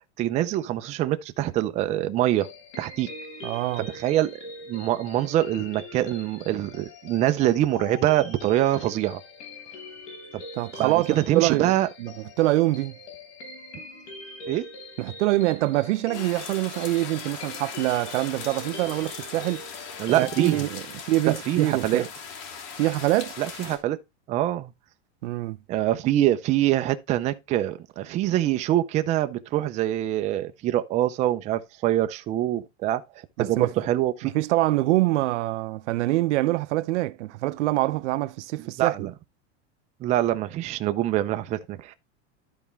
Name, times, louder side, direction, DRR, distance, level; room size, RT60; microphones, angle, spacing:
voice 1, 0.2-2.5 2.8-3.1 3.9-4.4 4.7-9.2 10.3-10.4 10.8-11.9 14.5-14.7 20.0-20.6 21.5-22.0 23.4-24.0 24.3-24.7 25.7-34.3 38.8-39.1 40.0-41.9, right 13 dB, 20° right, 0.4 m, -24 dB
sound 1, 2.3-20.6, left 3 dB, 80° left, 3.7 m, -43 dB
voice 2, 3.4-3.9 10.6-13.0 15.0-19.6 20.1-22.1 22.7-23.4 25.2-25.6 33.4-33.7 34.2-39.1, right 17 dB, 75° right, 0.6 m, -25 dB
sound 2, 16.1-23.8, left 6 dB, 50° left, 3.0 m, -39 dB
12.5 x 4.2 x 3.4 m
supercardioid pair, 155°, 35 cm